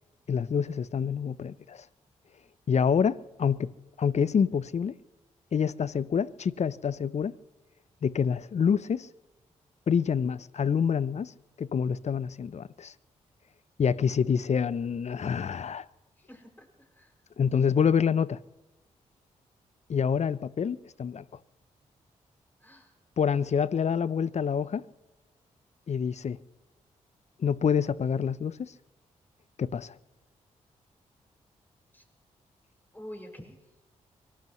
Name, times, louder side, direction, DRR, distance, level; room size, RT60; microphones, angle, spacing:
voice 1, 0.3-1.8 2.7-5.0 5.5-7.3 8.0-9.1 9.9-11.3 11.6-12.9 13.8-15.8 17.4-18.4 19.9-21.2 23.2-24.9 25.9-26.4 27.4-28.7 29.6-30.0, left 7 dB, 50° left, 0.6 m, -27 dB
voice 2, 16.2-17.1 22.6-22.9 31.9-32.0 32.9-33.6, equal, 15° left, 6.1 m, -47 dB
24.5 x 18.5 x 3.1 m
supercardioid pair, 45°, 15 cm